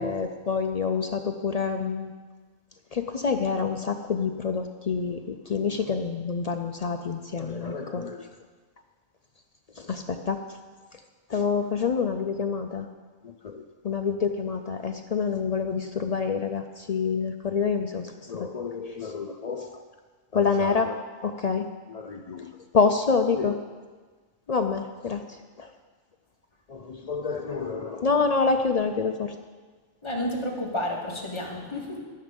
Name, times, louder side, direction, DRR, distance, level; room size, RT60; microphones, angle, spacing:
voice 1, 0.0-2.1 2.9-8.3 9.8-10.4 11.3-12.9 13.2-19.8 20.3-23.6 24.5-25.7 26.7-29.3, left 5 dB, 70° left, 6 dB, 0.3 m, -27 dB
voice 2, 30.0-32.0, left 1 dB, 20° left, -3 dB, 2.0 m, -31 dB
11.5 x 9.8 x 5.2 m, 1.4 s
omnidirectional pair, 1.4 m